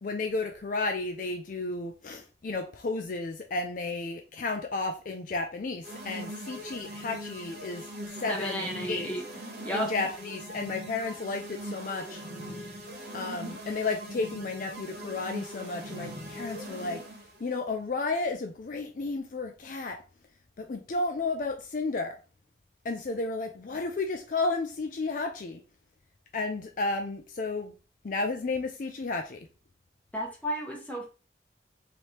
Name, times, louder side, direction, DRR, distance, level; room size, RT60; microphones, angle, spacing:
voice 1, 0.0-7.8 8.2-9.1 9.7-12.2 13.1-17.0 17.4-20.0 20.6-22.2 22.8-25.6 26.3-27.7 28.0-29.5, left 3 dB, 50° left, 5 dB, 0.4 m, -32 dB
sound 1, 5.8-17.4, equal, 65° right, 1.3 m, -41 dB
voice 2, 8.3-9.3 9.6-9.9 30.1-31.1, equal, 10° left, -2 dB, 1.2 m, -32 dB
3.2 x 3.0 x 4.2 m, 0.34 s
head